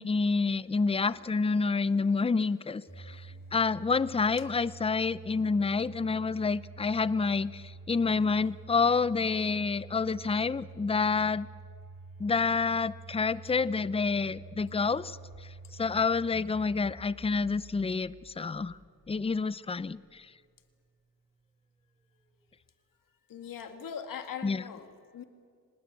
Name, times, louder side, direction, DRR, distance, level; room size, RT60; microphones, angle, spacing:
voice 1, 0.0-3.2 3.5-11.5 12.2-15.2 15.8-18.8 19.1-20.3 24.4-24.6, left 4 dB, 20° left, 17 dB, 0.5 m, -28 dB
voice 2, 0.6-3.5 4.4-4.5 23.3-25.2, left 7 dB, 80° left, 7 dB, 2.1 m, -44 dB
Domestic sounds home sounds, 2.9-19.8, right 3 dB, 5° right, 5.3 m, -48 dB
25.0 x 20.0 x 8.5 m, 2.1 s
cardioid pair, 100°, 33 cm